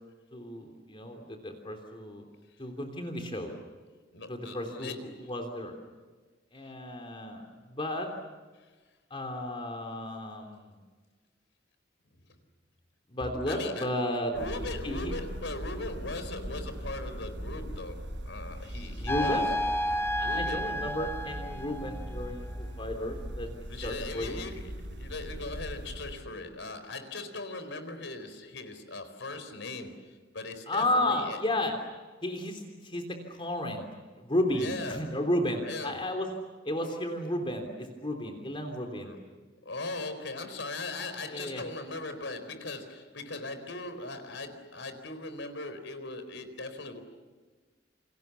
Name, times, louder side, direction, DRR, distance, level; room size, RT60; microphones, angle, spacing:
voice 1, 0.3-2.2 2.6-3.5 4.3-5.7 6.5-7.4 7.7-8.1 9.1-10.8 13.1-14.3 14.6-15.1 18.8-19.5 20.2-24.4 30.7-31.7 32.2-33.9 34.2-36.3 36.6-39.2 41.3-41.6, left 1 dB, 30° left, 3 dB, 3.3 m, -33 dB
voice 2, 4.1-5.3 6.6-6.7 13.5-13.9 14.3-19.4 20.2-20.7 23.7-31.4 34.5-35.2 35.5-36.0 38.9-39.2 39.6-47.0, left 2 dB, 80° left, 9 dB, 4.3 m, -39 dB
sound 1, 14.3-26.1, equal, 80° right, 6.3 m, -40 dB
sound 2, 19.1-22.3, left 1 dB, 15° left, 1.2 m, -31 dB
29.0 x 28.5 x 7.0 m, 1.4 s
head